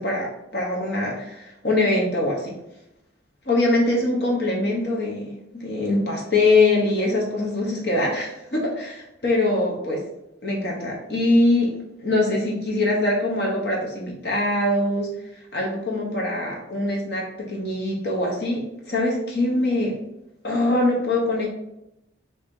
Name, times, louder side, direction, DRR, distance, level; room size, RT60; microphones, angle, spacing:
voice 1, 0.0-2.5 3.5-10.0 10.4-11.7 12.0-15.1 15.5-20.0 20.4-21.5, left 2 dB, 55° left, -2 dB, 1.0 m, -23 dB
4.0 x 2.8 x 3.7 m, 0.85 s
head